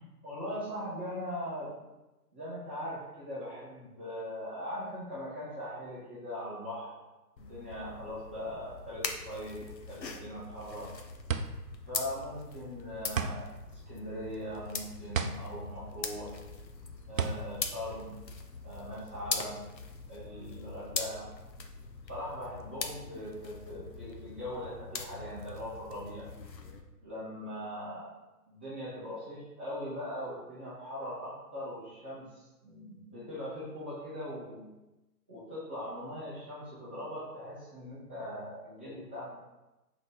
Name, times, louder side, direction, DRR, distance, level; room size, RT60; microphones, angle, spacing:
voice 1, 0.2-1.8 2.3-7.0 7.4-10.9 11.9-16.3 17.1-18.2 18.6-19.7 20.1-21.3 22.1-26.3 27.0-28.1 28.5-34.7 35.3-39.4, equal, 5° right, -14 dB, 0.6 m, -40 dB
sound 1, 7.4-26.8, left 5 dB, 80° left, 1.0 m, -42 dB
sound 2, 10.5-18.8, right 5 dB, 55° right, 0.6 m, -36 dB
6.0 x 3.8 x 4.9 m, 1.0 s
hypercardioid pair, 160°, 50 cm